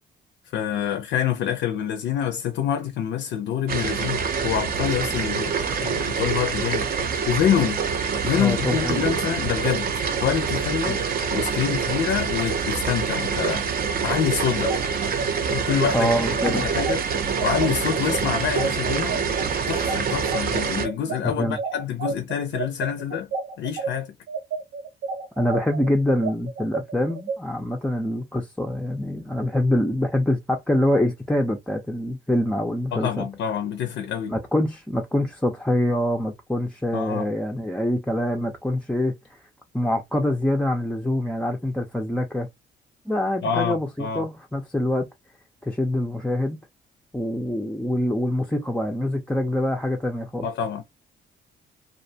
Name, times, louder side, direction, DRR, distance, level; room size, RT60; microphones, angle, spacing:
voice 1, 0.5-7.8 8.2-11.0 11.3-13.6 14.0-14.8 15.5-16.1 16.4-17.0 17.4-19.2 19.7-23.3 23.6-24.1 32.9-34.3 36.9-37.3 43.4-44.3 50.4-50.8, left 9 dB, 70° left, 0.5 m, -26 dB
sound 1, 3.7-20.9, right 6 dB, 50° right, 0.5 m, -26 dB
voice 2, 8.4-9.1 15.9-16.6 21.2-21.6 25.4-33.3 34.3-39.1 39.7-42.5 43.1-45.1 45.6-46.6 47.1-50.5, left 1 dB, 5° left, 0.4 m, -25 dB
sound 2, 14.5-23.9 24.3-27.4, right 4 dB, 85° right, 1.2 m, -31 dB
2.4 x 2.1 x 2.6 m
cardioid pair, 90°, 20 cm